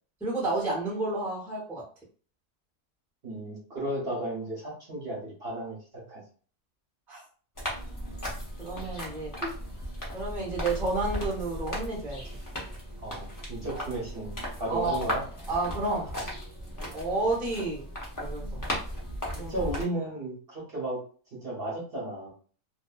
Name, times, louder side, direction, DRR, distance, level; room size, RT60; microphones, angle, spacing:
voice 1, 0.2-1.8 7.1-7.2 8.6-9.3 10.1-12.2 13.7-13.8 14.7-15.0 15.5-16.1 16.9-17.9 18.2-18.6 19.4-19.5, right 2 dB, ahead, -4 dB, 0.7 m, -30 dB
voice 2, 3.2-5.8 6.1-6.2 9.4-9.5 13.0-15.2 19.3-21.0 21.3-22.3, right 1 dB, 45° right, -5 dB, 1.0 m, -34 dB
sound 1, 7.5-19.8, equal, 25° left, 0.4 m, -36 dB
2.6 x 2.4 x 2.3 m, 0.41 s
omnidirectional pair, 1.7 m